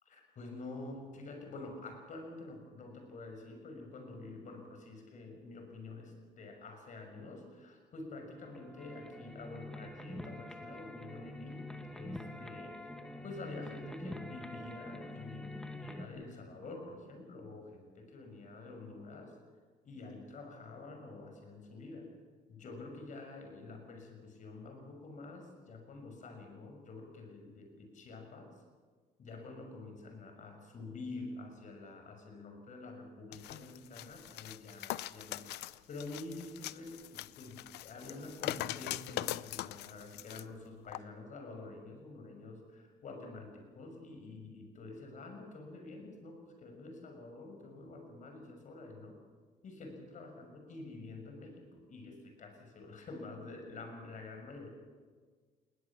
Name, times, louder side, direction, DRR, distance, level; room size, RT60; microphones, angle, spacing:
voice 1, 0.1-11.7 11.9-12.8 13.2-19.3 19.8-22.1 22.5-28.5 29.2-49.2 49.6-54.7, left 3 dB, 45° left, 4 dB, 6.3 m, -48 dB
sound 1, 8.4-16.1, left 1 dB, 5° left, 1.9 m, -46 dB
sound 2, 33.3-40.4 40.9-41.0, left 16 dB, 80° left, 0.6 m, -42 dB
21.0 x 19.0 x 7.2 m, 1.5 s
cardioid pair, 110°, 17 cm